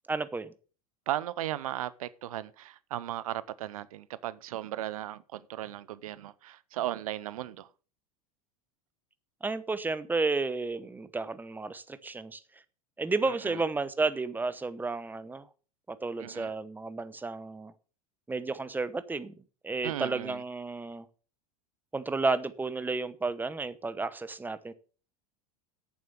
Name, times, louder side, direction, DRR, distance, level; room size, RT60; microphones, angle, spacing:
voice 1, 0.1-0.5 9.4-12.4 13.0-15.5 15.9-17.7 18.3-19.3 19.6-21.1 21.9-24.7, right 3 dB, 10° right, 0.9 m, -32 dB
voice 2, 1.1-7.7 13.3-13.6 16.2-16.5 19.8-20.4, right 13 dB, 80° right, 0.7 m, -36 dB
8.5 x 7.4 x 7.0 m
hypercardioid pair, 95°, 18 cm